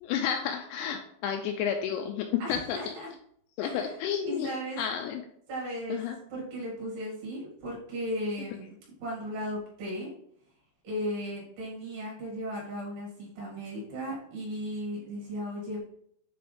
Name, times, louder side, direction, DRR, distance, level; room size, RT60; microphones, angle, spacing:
voice 1, 0.0-2.9 3.6-4.5 4.8-5.2 5.9-6.2, left 8 dB, 85° left, 4 dB, 2.6 m, -31 dB
voice 2, 2.4-3.1 3.6-4.0 4.2-4.8 5.5-6.0 6.3-10.1 10.8-15.8, equal, 60° right, -5 dB, 4.1 m, -36 dB
9.3 x 3.4 x 3.4 m, 0.68 s
omnidirectional pair, 5.4 m